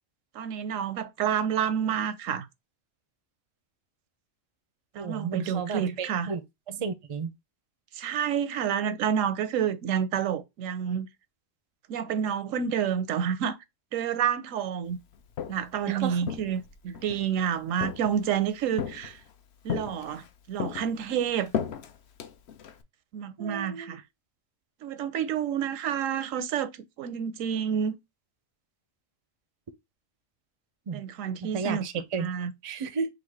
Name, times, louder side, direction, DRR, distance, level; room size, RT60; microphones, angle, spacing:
voice 1, 0.3-2.5 5.0-6.3 7.9-11.1 11.9-13.6 13.9-15.0 15.5-19.2 19.6-21.5 23.1-24.0 24.8-26.7 27.0-28.0 30.9-31.9 32.1-32.5, right 8 dB, 85° right, 1.0 m, -29 dB
voice 2, 4.9-6.4 6.7-7.3 15.9-16.2 23.4-24.0 30.9-31.0 31.4-32.3 32.6-33.1, right 5 dB, 45° right, 0.4 m, -33 dB
Walk footsteps, 15.1-15.8 16.2-17.3 17.8-18.4 18.8-19.3 19.7-20.3 20.6-22.8, left 8 dB, 60° left, 0.8 m, -35 dB
3.8 x 2.5 x 4.6 m
omnidirectional pair, 1.3 m